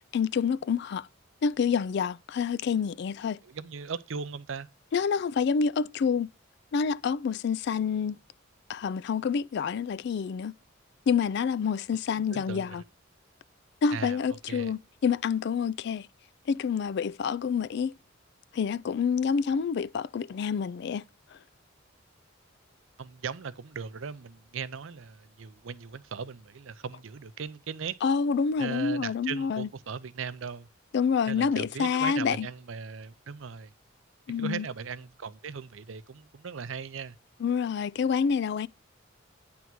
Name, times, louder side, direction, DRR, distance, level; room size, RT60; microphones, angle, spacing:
voice 1, 0.1-1.1 1.4-3.4 4.9-6.3 6.7-8.2 8.7-10.5 11.1-12.8 13.8-16.1 16.5-17.9 18.5-21.0 28.0-29.7 30.9-32.5 34.3-34.7 37.4-38.7, left 6 dB, 55° left, 0.3 m, -27 dB
voice 2, 3.4-4.7 12.3-12.8 13.9-14.7 23.0-28.0 28.6-30.7 31.3-33.7 34.4-37.2, right 6 dB, 70° right, 0.6 m, -38 dB
9.4 x 3.5 x 6.0 m
head